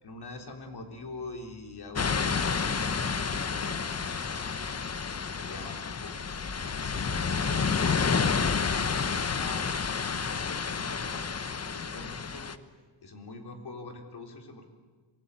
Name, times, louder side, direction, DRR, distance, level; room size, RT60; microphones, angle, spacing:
voice 1, 0.0-4.5 5.2-6.2 6.8-8.4 8.7-11.3 11.7-12.6 13.0-14.7, left 3 dB, 55° left, 4 dB, 3.8 m, -44 dB
sound 1, 2.0-12.6, left 5 dB, 35° left, 1.1 m, -30 dB
27.0 x 18.5 x 8.3 m, 1.5 s
cardioid pair, 90°, 45 cm